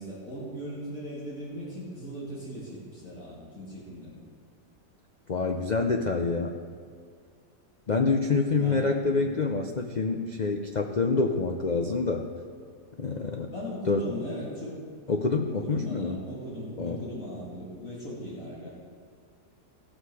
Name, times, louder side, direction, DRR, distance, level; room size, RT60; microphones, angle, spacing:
voice 1, 0.0-4.1 8.6-8.8 9.1-9.3 13.5-14.7 15.5-18.7, equal, 55° left, -7 dB, 3.1 m, -38 dB
voice 2, 5.3-6.5 7.9-12.3 13.0-13.5 13.8-14.1 15.1-16.2 16.8-17.0, left 4 dB, 85° left, 3 dB, 0.4 m, -27 dB
17.5 x 6.4 x 4.8 m, 2.2 s
omnidirectional pair, 1.7 m